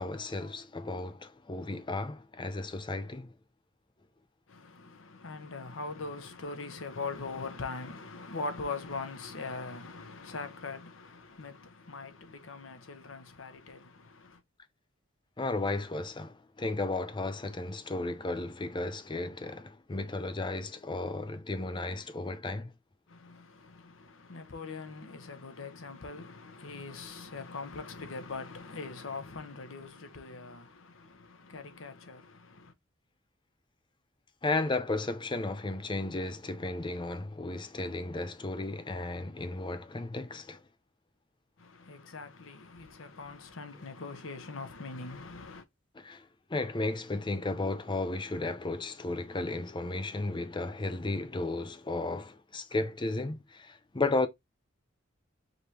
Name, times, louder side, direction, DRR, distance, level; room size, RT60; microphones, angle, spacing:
voice 1, 0.0-3.3 15.4-22.7 34.4-40.6 45.9-54.3, left 2 dB, 25° left, 0.6 m, -34 dB
voice 2, 4.5-14.4 23.1-32.7 41.6-45.6, left 3 dB, 80° left, 1.0 m, -42 dB
5.2 x 3.2 x 2.8 m
head